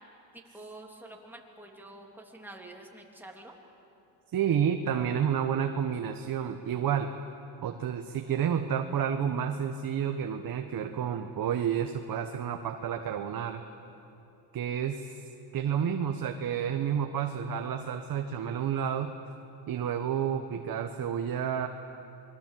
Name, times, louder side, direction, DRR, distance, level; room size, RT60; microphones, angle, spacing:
voice 1, 0.3-3.5, right 2 dB, 5° right, 0 dB, 3.3 m, -47 dB
voice 2, 4.3-7.1 7.6-13.6 14.5-15.2 15.5-19.1 19.7-21.7, right 8 dB, 45° right, 5 dB, 1.3 m, -30 dB
27.0 x 21.5 x 7.7 m, 2.9 s
cardioid pair, 110°, 50 cm